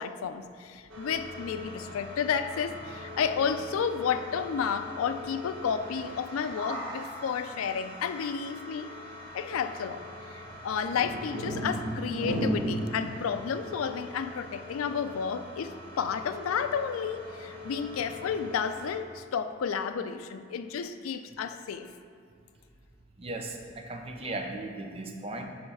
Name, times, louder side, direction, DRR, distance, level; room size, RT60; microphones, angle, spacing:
voice 1, 0.0-8.9 9.3-10.0 10.3-21.9, left 6 dB, 90° left, 10 dB, 0.4 m, -31 dB
sound 1, 0.9-19.0, equal, 85° right, 1.3 m, -39 dB
voice 2, 23.2-25.4, right 2 dB, 30° right, 4 dB, 0.5 m, -37 dB
7.8 x 3.2 x 5.5 m, 2.4 s
head